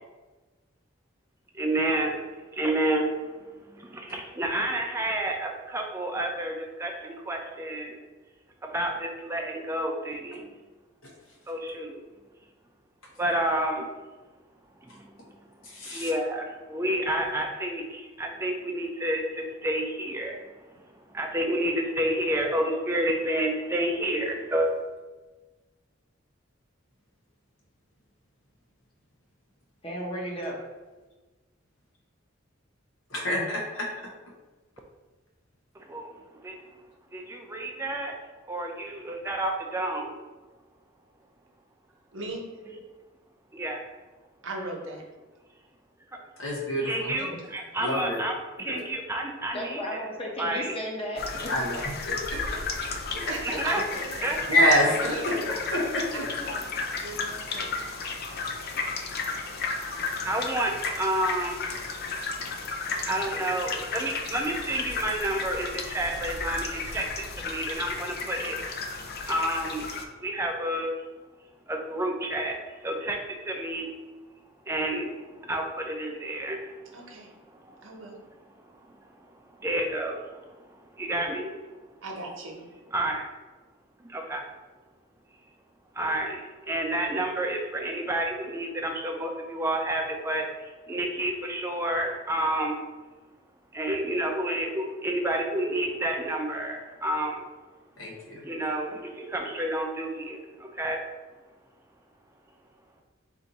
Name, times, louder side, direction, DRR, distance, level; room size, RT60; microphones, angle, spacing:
voice 1, 1.5-2.1 2.5-3.3 3.7-8.0 8.6-10.5 11.5-12.0 13.2-13.9 15.9-20.4 21.1-24.7 35.9-36.6 37.1-38.1 38.5-40.1 43.5-43.8 46.9-50.0 50.4-50.7 53.4-53.8 54.2-54.4 60.2-61.6 63.0-68.6 69.3-69.9 70.2-70.9 71.7-73.9 74.7-76.7 79.6-80.4 81.0-81.5 82.9-83.3 84.1-84.4 86.0-92.8 93.7-97.5 98.4-101.0, right 1 dB, 15° right, 2 dB, 0.5 m, -30 dB
voice 2, 15.6-16.1 33.1-33.9 46.4-47.1 47.8-48.2 48.7-48.8 51.5-52.6 54.5-56.2 98.0-98.4, equal, 85° left, -2 dB, 1.3 m, -27 dB
voice 3, 29.8-30.6 49.5-51.5, equal, 30° left, -2 dB, 0.9 m, -34 dB
voice 4, 42.1-42.4 44.4-45.0 47.2-47.3 53.3-54.3 54.8-55.5 56.4-56.7 57.0-57.7 76.9-77.3 77.8-78.2 82.0-82.6, right 2 dB, 75° right, 0 dB, 1.0 m, -38 dB
sound 1, 51.2-70.0, left 4 dB, 50° left, 0.5 m, -33 dB
4.6 x 2.7 x 4.0 m, 1.2 s
head